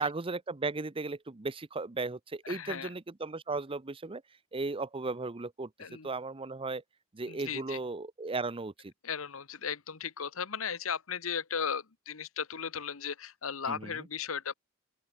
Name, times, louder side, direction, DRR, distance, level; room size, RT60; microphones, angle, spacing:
voice 1, 0.0-4.2 4.5-5.7 6.0-6.8 7.1-8.9 13.7-13.9, right 3 dB, 25° right, 0.7 m, -35 dB
voice 2, 2.4-2.9 5.8-6.1 7.2-7.8 9.0-14.5, left 7 dB, 80° left, 1.2 m, -36 dB
open air
head